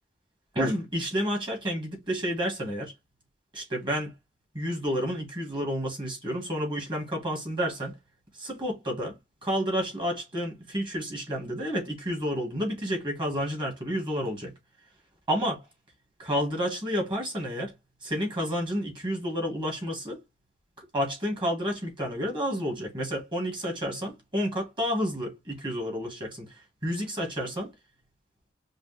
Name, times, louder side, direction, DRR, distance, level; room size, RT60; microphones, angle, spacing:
voice 1, 0.6-2.9 3.5-4.1 4.5-8.0 8.3-9.2 9.4-14.5 15.3-15.6 16.2-17.7 18.0-20.2 20.9-26.5 26.8-27.7, equal, 25° right, 2.2 m, -30 dB
5.2 x 2.5 x 3.6 m
head